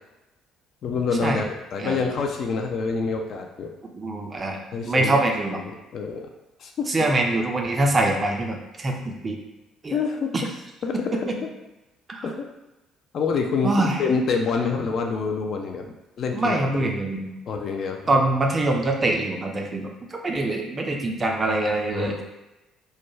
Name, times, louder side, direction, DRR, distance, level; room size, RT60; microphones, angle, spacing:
voice 1, 0.8-1.4 1.7-3.8 4.7-5.2 5.6-6.3 6.6-6.9 9.9-10.3 10.8-11.5 12.2-12.5 13.1-15.9 16.2-16.9 17.5-18.2 21.9-22.2, left 5 dB, 50° left, 3 dB, 0.3 m, -27 dB
voice 2, 3.9-5.6 6.9-9.4 9.8-10.0 10.3-10.4 10.9-11.4 12.1-12.2 13.6-14.0 16.3-17.4 18.1-22.2, right 2 dB, 30° right, 2 dB, 0.4 m, -24 dB
2.3 x 2.2 x 3.0 m, 1.0 s
figure-of-eight pair, 50°, 0 cm